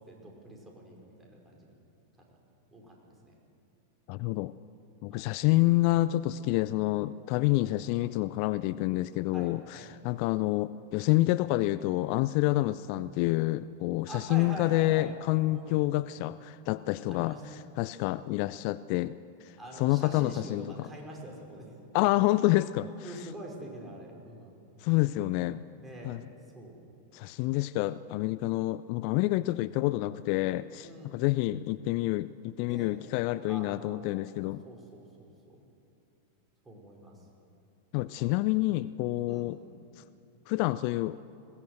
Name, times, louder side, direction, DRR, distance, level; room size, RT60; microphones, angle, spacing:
voice 1, 0.1-1.8 2.3-2.4 2.7-3.4 5.1-5.3 7.5-7.8 9.3-9.9 14.1-15.2 15.5-15.8 17.1-17.6 18.1-18.3 19.6-21.7 22.9-24.5 25.8-26.2 26.5-26.8 30.8-31.2 32.7-33.0 33.5-34.3 34.6-35.6 36.7-37.2 38.2-38.3 39.3-39.5, right 1 dB, 15° right, 0 dB, 5.1 m, -45 dB
voice 2, 4.1-4.5 5.0-17.4 17.8-20.9 21.9-22.9 24.8-25.6 26.0-26.2 27.1-34.6 37.9-39.6 40.5-41.2, left 18 dB, 45° left, 17 dB, 0.4 m, -28 dB
21.0 x 17.0 x 8.0 m, 2.6 s
figure-of-eight pair, 90°, 0 cm